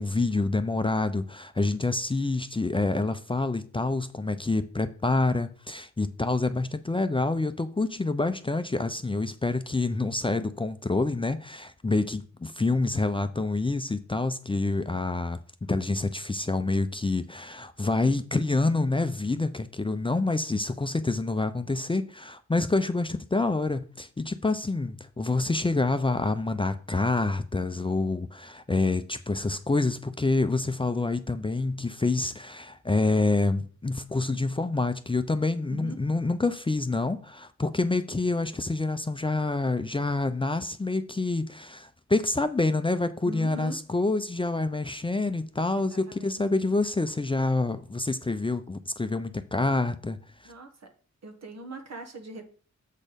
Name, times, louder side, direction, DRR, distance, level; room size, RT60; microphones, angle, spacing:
voice 1, 0.0-50.2 50.4-50.5, left 3 dB, 20° left, 0.5 m, -27 dB
voice 2, 35.7-36.0 43.2-43.8 45.9-46.3 50.4-50.9 51.2-52.5, equal, 65° right, 1.4 m, -41 dB
7.4 x 4.3 x 5.1 m
wide cardioid pair, 85°, 29 cm